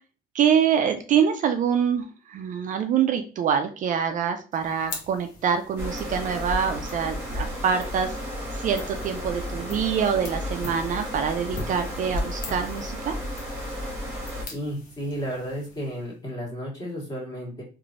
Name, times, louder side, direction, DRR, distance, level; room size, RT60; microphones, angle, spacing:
voice 1, 0.3-8.1 8.6-13.1, right 7 dB, 50° right, 7 dB, 0.4 m, -25 dB
sound 1, 4.5-16.2, left 3 dB, 55° left, 0.9 m, -44 dB
sound 2, 5.8-14.5, equal, 15° right, 1.3 m, -33 dB
voice 2, 14.4-17.6, equal, 20° left, -3 dB, 1.5 m, -33 dB
3.1 x 2.5 x 2.5 m, 0.36 s
cardioid pair, 110°, 17 cm